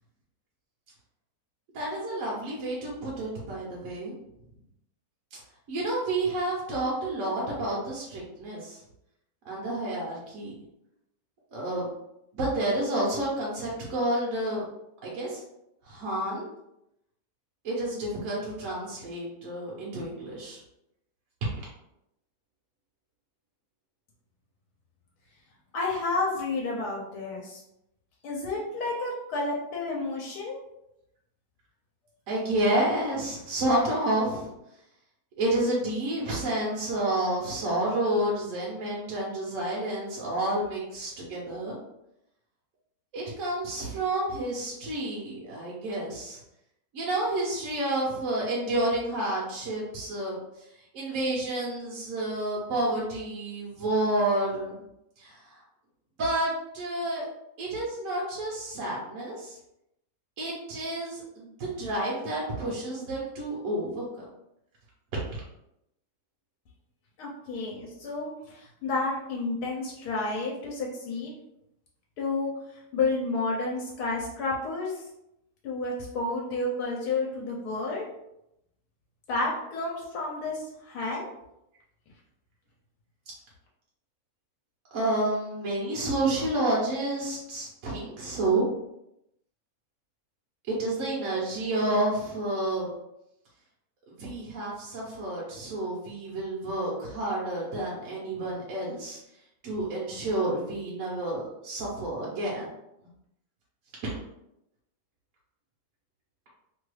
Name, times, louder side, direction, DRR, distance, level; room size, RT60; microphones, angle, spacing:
voice 1, 1.7-4.1 5.7-8.8 9.4-10.5 11.5-11.9 12.3-14.6 15.0-15.4 15.8-16.5 17.6-20.6 32.3-34.5 35.4-41.8 43.1-46.4 46.9-50.4 50.9-54.8 55.2-55.6 56.2-57.3 57.6-59.6 60.4-64.2 84.9-88.6 90.7-92.9 94.1-99.2 99.6-102.7, right 1 dB, 60° right, -4 dB, 1.1 m, -30 dB
voice 2, 25.7-27.6 28.2-30.6 67.2-71.3 72.2-75.0 75.6-78.1 79.3-81.3, left 3 dB, 85° left, -2 dB, 1.2 m, -31 dB
3.0 x 2.3 x 3.1 m, 0.83 s
omnidirectional pair, 1.6 m